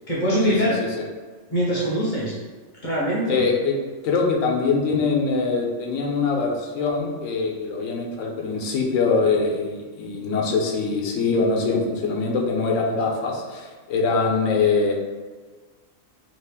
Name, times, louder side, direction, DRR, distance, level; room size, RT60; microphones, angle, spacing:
voice 1, 0.1-0.8 1.5-2.3 2.8-3.4, equal, 40° left, -7 dB, 0.8 m, -22 dB
voice 2, 3.3-3.8 4.0-14.9, left 4 dB, 70° left, 0 dB, 0.9 m, -23 dB
3.1 x 2.4 x 3.4 m, 1.4 s
omnidirectional pair, 1.5 m